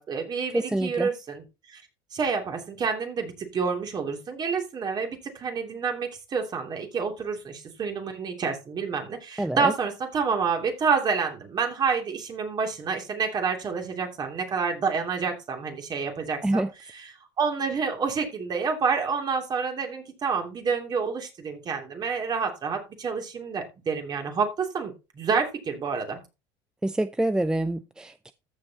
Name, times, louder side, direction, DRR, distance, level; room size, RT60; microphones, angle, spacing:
voice 1, 0.0-1.8 2.1-16.6 17.4-26.2, right 5 dB, 40° right, 2.9 m, -28 dB
voice 2, 0.5-1.1 9.4-9.7 16.4-16.7 26.8-28.3, right 1 dB, 5° right, 0.5 m, -26 dB
14.5 x 6.6 x 2.9 m
supercardioid pair, 90°, 11 cm